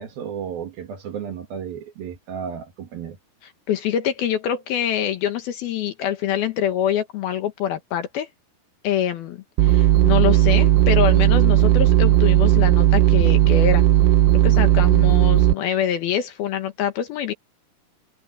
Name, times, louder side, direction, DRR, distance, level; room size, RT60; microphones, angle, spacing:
voice 1, 0.0-3.2, right 7 dB, 60° right, 3.4 m, -33 dB
voice 2, 3.7-8.3 8.8-13.8 14.4-17.3, left 9 dB, 65° left, 2.9 m, -25 dB
sound 1, 9.6-15.5, right 13 dB, 75° right, 2.8 m, -16 dB
omnidirectional pair, 5.1 m